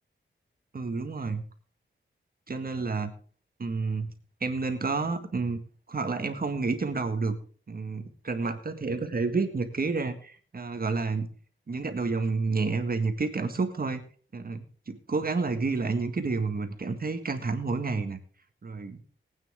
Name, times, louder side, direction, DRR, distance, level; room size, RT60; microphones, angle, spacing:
voice 1, 0.7-1.4 2.5-3.1 3.6-4.1 4.4-5.6 5.9-7.4 7.7-11.3 11.7-14.0 14.3-18.2 18.6-19.0, right 4 dB, 50° right, 8 dB, 1.8 m, -30 dB
19.5 x 9.1 x 3.7 m, 0.42 s
wide cardioid pair, 100°, 20 cm